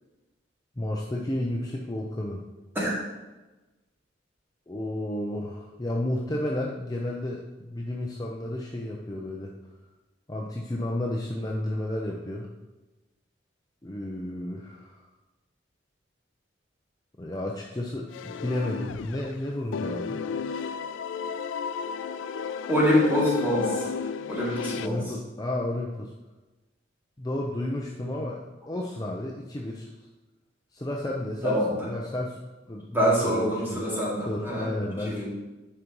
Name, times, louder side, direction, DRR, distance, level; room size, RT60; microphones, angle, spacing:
voice 1, 0.8-2.4 4.7-9.5 10.3-12.5 13.8-15.0 17.2-20.2 24.8-26.1 27.2-28.4 28.7-29.9 30.7-32.4 32.7-35.2, left 1 dB, 20° left, -1 dB, 0.6 m, -32 dB
sound 1, 18.1-19.4 19.7-24.9, left 6 dB, 75° left, 0.3 m, -32 dB
voice 2, 22.7-23.9 24.3-25.0 28.1-28.2 31.4-31.9 32.9-34.7 35.0-35.2, equal, 10° right, -6 dB, 2.3 m, -25 dB
9.9 x 5.2 x 3.0 m, 1.1 s
head